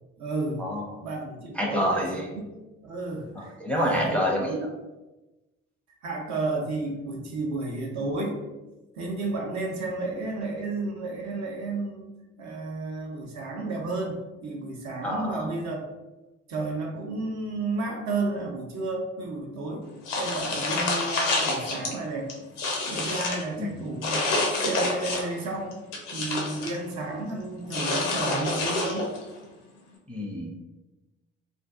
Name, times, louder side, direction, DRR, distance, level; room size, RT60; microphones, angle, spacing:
voice 1, 0.2-0.6 1.0-2.2 2.8-4.2 6.0-8.4 8.9-12.1 12.4-15.9 16.5-19.8 20.2-22.3 22.9-24.3 24.6-25.8 26.1-29.1, right 3 dB, 50° right, 0 dB, 0.7 m, -32 dB
voice 2, 1.5-2.3 3.4-4.7 15.0-15.5 23.6-23.7 30.1-30.5, equal, 5° left, -2 dB, 0.5 m, -27 dB
sound 1, 20.1-21.9 22.3-23.4 24.0-25.4 25.7-26.8 27.7-29.2, left 2 dB, 85° left, 0.5 m, -28 dB
2.5 x 2.4 x 2.3 m, 1.1 s
hypercardioid pair, 45°, 35 cm